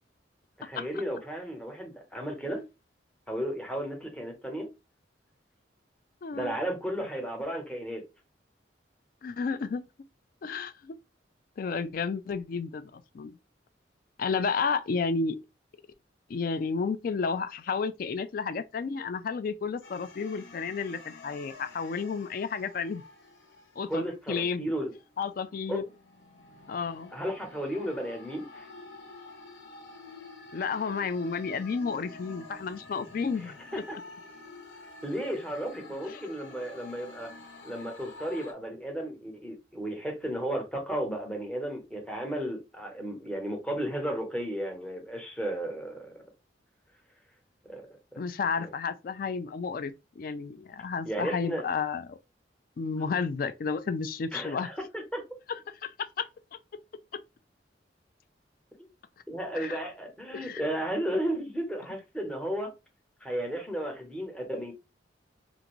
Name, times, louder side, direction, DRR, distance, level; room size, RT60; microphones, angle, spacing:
voice 1, 0.6-2.6 3.3-4.7 6.3-8.0 23.9-24.9 25.7-25.8 27.1-28.7 33.4-34.0 35.0-37.3 37.6-46.1 47.6-47.9 48.1-48.2 48.6-48.7 51.0-51.6 54.3-55.2 59.3-62.7 63.2-64.7, right 1 dB, 5° left, 0.8 m, -34 dB
voice 2, 6.2-6.6 9.2-9.8 10.4-11.0 11.6-13.3 14.2-15.4 16.3-23.0 23.8-24.7 25.2-25.8 26.7-27.1 30.5-33.6 36.0-36.2 48.2-52.2 52.8-54.7 55.5-56.3 59.6-59.8 60.3-60.6, left 5 dB, 50° left, 0.3 m, -32 dB
sound 1, 19.8-24.2 24.8-38.5, left 2 dB, 85° left, 0.8 m, -49 dB
2.5 x 2.5 x 3.0 m
head